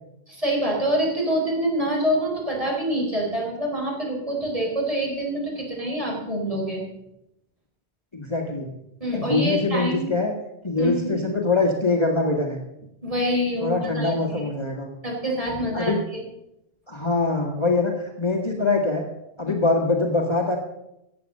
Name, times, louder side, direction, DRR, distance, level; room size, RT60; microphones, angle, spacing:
voice 1, 0.3-6.8 9.0-10.1 10.8-11.1 13.0-14.5 15.0-16.3 19.5-19.6, equal, 35° right, -3 dB, 4.6 m, -26 dB
voice 2, 8.1-8.7 9.1-10.3 10.6-12.6 13.6-14.9 15.7-16.0 16.9-19.1 19.4-20.6, left 3 dB, 25° left, 0 dB, 1.7 m, -23 dB
15.0 x 8.6 x 6.6 m, 0.85 s
omnidirectional pair, 1.0 m